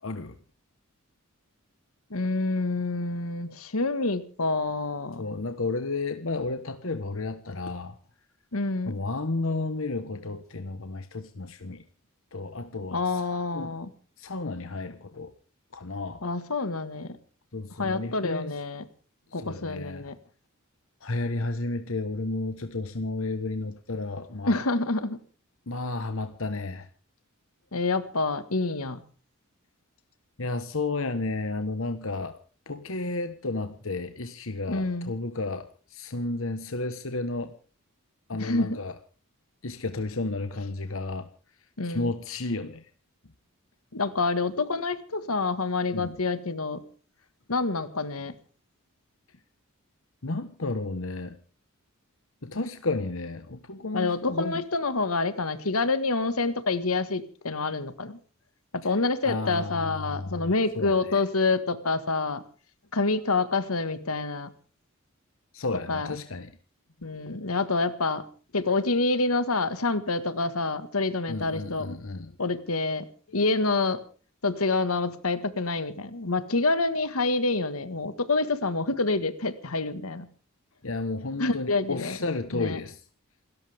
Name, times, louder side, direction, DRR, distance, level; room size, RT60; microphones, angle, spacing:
voice 1, 0.0-0.3 5.2-7.9 8.9-11.8 12.3-13.0 13.5-13.7 14.2-15.3 15.7-16.2 17.5-18.5 19.4-20.0 21.0-24.6 25.7-26.8 30.4-32.3 32.7-35.7 35.9-37.5 38.3-38.9 39.6-41.3 41.8-42.8 45.9-46.1 50.2-51.4 52.4-54.6 59.2-60.5 60.7-61.2 65.5-66.5 71.3-72.3 80.8-83.0, left 3 dB, 65° left, 9 dB, 1.3 m, -32 dB
voice 2, 2.1-5.2 8.5-8.9 12.9-13.9 16.2-17.2 17.8-18.8 19.3-20.2 24.4-25.2 27.7-29.0 34.7-35.1 38.3-38.8 41.8-42.1 43.9-46.8 47.5-48.3 53.9-58.2 58.8-62.4 62.9-64.5 65.9-66.1 67.0-68.2 68.5-72.0 72.4-73.1 73.3-74.0 74.4-80.3 81.4-82.2 82.5-82.8, left 3 dB, 85° left, 12 dB, 1.7 m, -27 dB
28.5 x 13.5 x 3.5 m, 0.39 s
head